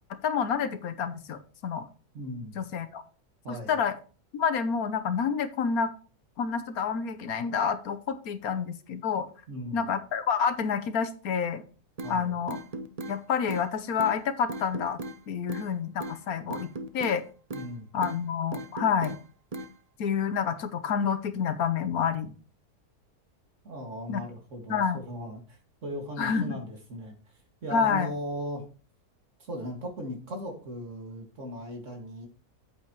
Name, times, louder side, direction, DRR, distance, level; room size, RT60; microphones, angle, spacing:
voice 1, 0.2-1.9 2.6-3.0 3.5-4.0 4.3-5.9 6.4-9.3 9.7-11.6 12.1-12.6 13.1-15.0 15.3-16.7 16.9-17.2 17.9-19.2 20.0-22.3 24.1-24.2 24.7-25.0 26.2-26.6 27.7-28.1, left 6 dB, 70° left, 12 dB, 1.3 m, -28 dB
voice 2, 2.1-2.6 3.4-3.8 9.5-9.9 12.0-12.3 17.5-17.9 23.6-27.2 27.6-28.6 29.4-32.3, equal, 50° right, 3 dB, 2.4 m, -38 dB
sound 1, 12.0-12.1 12.5-13.1 13.5-13.6 14.0-14.1 14.5-15.2 15.5-15.7 16.0-16.2 16.5-17.2 17.5-17.7 18.0-18.2 18.5-19.2 19.5-19.7, right 2 dB, 35° right, 0.7 m, -37 dB
8.6 x 8.4 x 3.1 m, 0.37 s
omnidirectional pair, 1.6 m